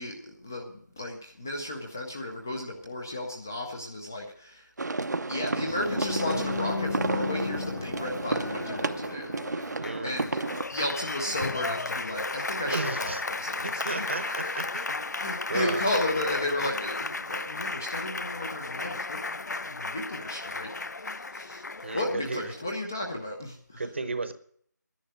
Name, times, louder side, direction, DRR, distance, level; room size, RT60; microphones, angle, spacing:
voice 1, 0.0-4.7 5.1-9.7 10.0-10.4 10.7-14.8 15.1-21.6 21.9-23.8, left 1 dB, 10° left, 1 dB, 0.5 m, -34 dB
sound 1, 4.8-10.6, right 3 dB, 65° right, 0.8 m, -32 dB
Applause, 5.7-22.7, left 3 dB, 65° left, 0.5 m, -34 dB
voice 2, 9.8-10.1 12.7-13.2 13.6-15.0 15.5-15.8 21.8-22.4 23.8-24.3, right 3 dB, 40° right, 11 dB, 1.0 m, -33 dB
10.5 x 10.5 x 9.0 m, 0.62 s
figure-of-eight pair, 175°, 10 cm